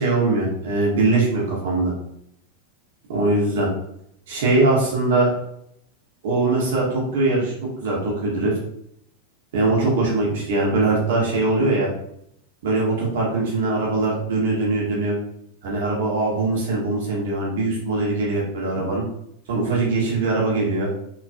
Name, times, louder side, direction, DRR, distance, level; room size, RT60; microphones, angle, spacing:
voice 1, 0.0-1.9 3.1-3.7 4.3-5.3 6.2-7.5 7.8-8.5 9.5-11.9 12.6-15.2 15.6-19.0 19.5-20.9, right 2 dB, 55° right, -3 dB, 1.8 m, -21 dB
5.4 x 4.2 x 2.2 m, 0.75 s
figure-of-eight pair, 90°, 0 cm